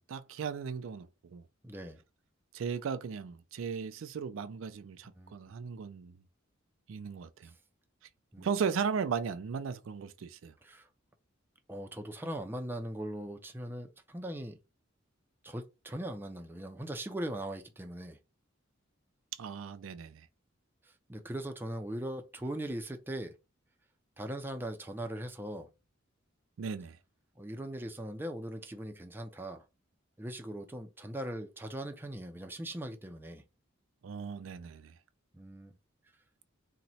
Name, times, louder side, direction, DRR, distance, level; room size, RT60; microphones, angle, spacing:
voice 1, 0.0-1.4 2.5-6.1 6.9-7.5 8.4-10.5 19.4-20.3 26.6-27.0 34.0-34.9, right 6 dB, 70° right, 0.4 m, -36 dB
voice 2, 1.6-2.0 5.2-5.3 8.3-8.5 10.6-10.9 11.7-14.6 15.4-18.2 21.1-23.3 24.2-25.7 27.4-29.6 30.2-33.4 35.3-35.7, right 1 dB, 10° right, 0.4 m, -40 dB
2.9 x 2.1 x 4.0 m
head